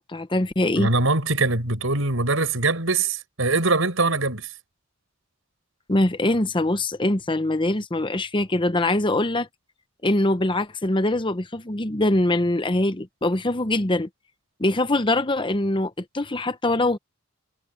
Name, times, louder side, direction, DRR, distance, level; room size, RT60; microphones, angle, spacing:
voice 1, 0.1-0.9 5.9-9.5 10.0-14.1 14.6-17.0, left 1 dB, 25° left, 0.9 m, -23 dB
voice 2, 0.8-4.5, right 3 dB, 80° right, 5.2 m, -22 dB
head